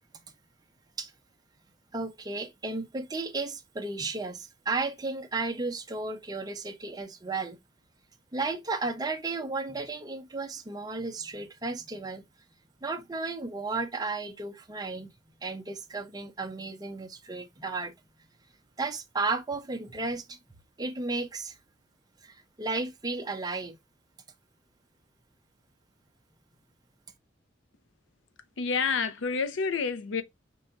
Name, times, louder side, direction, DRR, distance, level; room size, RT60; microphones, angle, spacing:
voice 1, 1.9-7.6 8.3-12.2 12.8-15.1 15.4-17.9 18.8-20.4 20.8-21.6 22.2-23.8, right 3 dB, 20° right, 0.5 m, -34 dB
voice 2, 28.6-30.2, left 5 dB, 80° left, 0.5 m, -28 dB
4.5 x 2.2 x 3.9 m
head